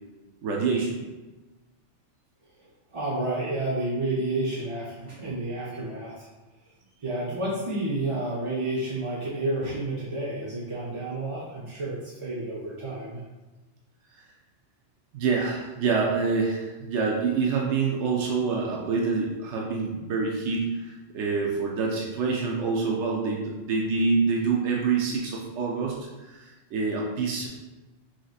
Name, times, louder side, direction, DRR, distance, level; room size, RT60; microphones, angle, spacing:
voice 1, 0.4-1.0 15.1-27.5, right 4 dB, 80° right, -1 dB, 0.9 m, -26 dB
voice 2, 2.9-6.3 7.0-13.2, right 2 dB, 35° right, -6 dB, 0.6 m, -30 dB
6.0 x 2.8 x 2.4 m, 1.2 s
omnidirectional pair, 1.2 m